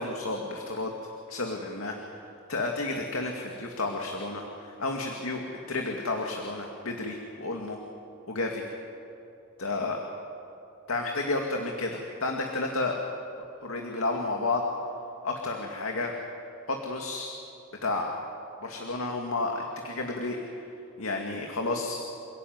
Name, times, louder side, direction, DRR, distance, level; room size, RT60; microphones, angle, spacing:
voice 1, 0.0-7.8 8.3-8.6 9.6-10.0 10.9-13.0 13.6-14.6 15.2-16.1 16.7-17.3 17.8-18.1 18.6-20.5 21.0-21.9, left 2 dB, 80° left, 2 dB, 2.3 m, -31 dB
28.0 x 17.0 x 9.5 m, 2.8 s
head